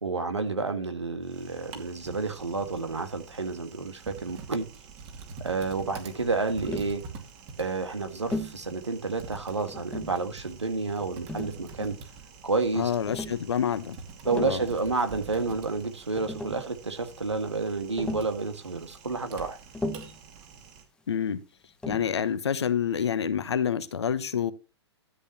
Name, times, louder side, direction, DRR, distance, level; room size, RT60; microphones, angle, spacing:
voice 1, 0.0-4.7 5.4-7.0 7.6-12.0 12.4-12.9 14.3-19.6, right 3 dB, 85° right, 1.8 m, -30 dB
Typing, 1.2-20.8, right 5 dB, 40° right, 2.5 m, -46 dB
Tap, 6.7-7.0 8.3-8.6 9.7-10.2 11.3-12.1 13.1-13.4 14.1-14.6 15.8-15.9 16.1-16.7 18.0-18.4 19.7-20.2 21.8-22.2, left 1 dB, 5° left, 1.2 m, -36 dB
voice 2, 12.7-14.0 14.4-14.6 21.1-21.4 21.9-24.5, left 8 dB, 70° left, 1.1 m, -27 dB
13.0 x 8.2 x 3.0 m
figure-of-eight pair, 110°, 14 cm